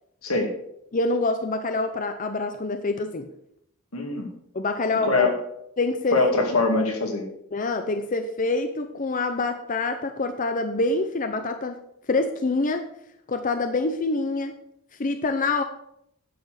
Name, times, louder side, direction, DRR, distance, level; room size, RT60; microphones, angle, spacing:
voice 1, 0.9-3.3 4.5-5.3 5.8-6.2 7.5-11.8 12.1-12.9 13.3-14.5 15.0-15.6, left 3 dB, 40° left, 7 dB, 0.7 m, -26 dB
voice 2, 3.9-4.3 5.0-5.3 6.1-7.3, left 3 dB, 90° left, 2 dB, 2.4 m, -23 dB
10.5 x 6.0 x 6.4 m, 0.75 s
head